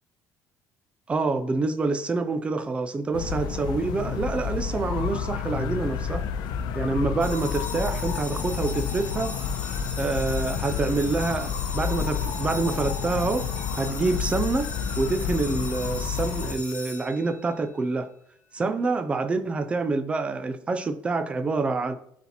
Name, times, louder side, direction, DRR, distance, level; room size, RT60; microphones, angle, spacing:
voice 1, 1.1-6.2 6.7-9.3 10.0-13.5 13.8-14.7 15.0-18.1 18.5-21.9, right 3 dB, 15° right, 0.6 m, -27 dB
sound 1, 3.1-16.6, left 7 dB, 75° left, 0.8 m, -30 dB
sound 2, 7.2-17.6, left 4 dB, 20° left, 1.4 m, -39 dB
12.5 x 4.2 x 4.3 m
cardioid pair, 175°, 7 cm